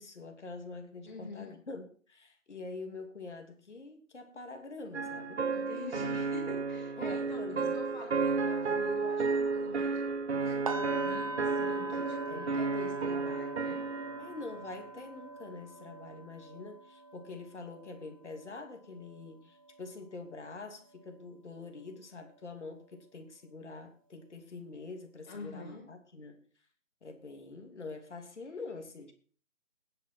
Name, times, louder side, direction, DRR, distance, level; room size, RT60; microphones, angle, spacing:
voice 1, 0.0-5.5 7.0-7.8 10.5-10.6 12.3-12.7 14.2-26.4 27.0-29.1, left 3 dB, 60° left, 5 dB, 2.9 m, -45 dB
voice 2, 1.0-1.6 5.5-10.0 10.3-13.8 25.3-25.9, left 3 dB, 35° left, -2 dB, 7.6 m, -46 dB
sound 1, 4.9-14.4, right 4 dB, 60° right, 0.8 m, -32 dB
sound 2, 10.7-20.6 20.9-21.2 21.6-21.8, right 2 dB, 25° right, 1.0 m, -43 dB
15.5 x 10.5 x 4.4 m, 0.43 s
figure-of-eight pair, 160°, 39 cm